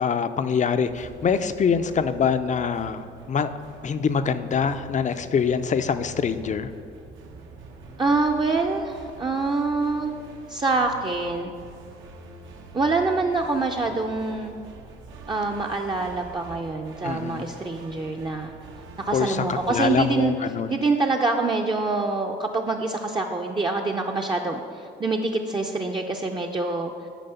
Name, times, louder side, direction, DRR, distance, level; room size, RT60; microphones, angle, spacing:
voice 1, 0.0-3.5 3.8-6.7 17.0-17.5 19.1-20.8, left 6 dB, 40° left, 11 dB, 0.4 m, -24 dB
sound 1, 0.9-20.3, right 2 dB, 80° right, 1.0 m, -45 dB
voice 2, 8.0-10.1 10.5-11.5 12.7-14.5 15.3-18.5 19.0-20.4 20.7-26.9, right 3 dB, 25° right, 1 dB, 0.5 m, -25 dB
9.1 x 5.1 x 5.6 m, 2.3 s
cardioid pair, 90°, 20 cm